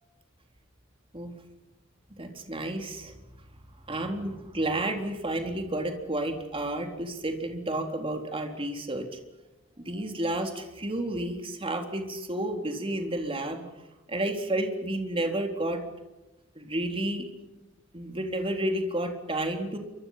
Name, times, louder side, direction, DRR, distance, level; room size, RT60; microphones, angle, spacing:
voice 1, 2.2-3.1 3.9-9.1 9.8-13.6 14.1-15.9 16.6-17.2 17.9-19.8, right 1 dB, 25° right, 4 dB, 3.8 m, -31 dB
28.5 x 25.0 x 5.8 m, 1.0 s
head